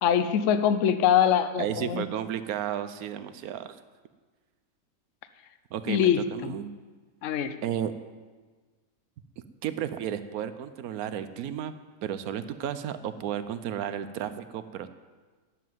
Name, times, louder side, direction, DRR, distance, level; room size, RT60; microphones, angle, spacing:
voice 1, 0.0-2.0 5.9-6.2 7.2-7.5, left 9 dB, 65° left, 11 dB, 1.0 m, -23 dB
voice 2, 1.6-3.8 5.7-6.7 7.6-7.9 9.6-11.7 12.0-14.9, right 10 dB, 90° right, 12 dB, 1.2 m, -33 dB
11.0 x 7.5 x 9.2 m, 1.4 s
omnidirectional pair, 1.5 m